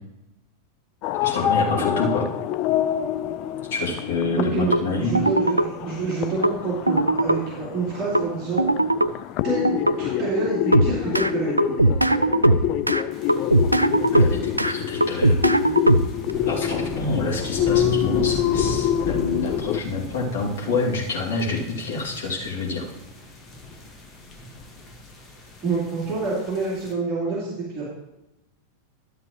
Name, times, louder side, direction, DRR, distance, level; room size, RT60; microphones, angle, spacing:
sound 1, 1.0-19.8, left 11 dB, 40° left, 0.4 m, -27 dB
voice 1, 1.2-2.3 3.7-5.1 14.1-15.4 16.4-22.9, left 3 dB, 60° left, -3 dB, 2.6 m, -27 dB
voice 2, 4.3-8.7 9.4-11.6 25.6-27.8, right 3 dB, 20° right, -9 dB, 3.4 m, -27 dB
sound 2, 4.7-4.8 5.1-5.7 6.4-6.5 6.9-7.4 8.1-8.2 8.6-9.1 9.6-9.9 10.7-11.3 11.6-13.0 13.3-14.7 15.0-16.3, right 1 dB, 85° right, 0.3 m, -19 dB
sound 3, 13.1-26.9, left 1 dB, 20° left, 1.7 m, -36 dB
12.5 x 7.4 x 3.1 m, 0.92 s
figure-of-eight pair, 90°, 0 cm